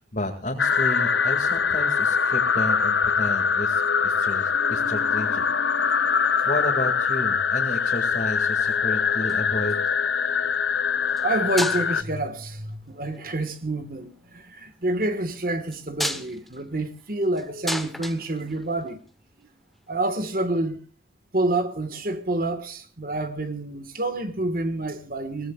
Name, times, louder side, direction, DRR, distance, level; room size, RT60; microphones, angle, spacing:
voice 1, 0.0-5.5 5.8-6.2 6.4-9.7, left 1 dB, 45° left, 2.2 m, -32 dB
sound 1, 0.6-12.0, left 6 dB, 70° left, 0.8 m, -23 dB
sound 2, 9.3-10.0 11.1-11.3 11.6-12.2 13.1-13.6 15.7-19.1 20.4-20.5, equal, ahead, 1.0 m, -33 dB
voice 2, 11.2-19.0 19.9-20.8 21.3-25.5, right 2 dB, 50° right, 1.6 m, -28 dB
24.0 x 18.0 x 2.4 m
head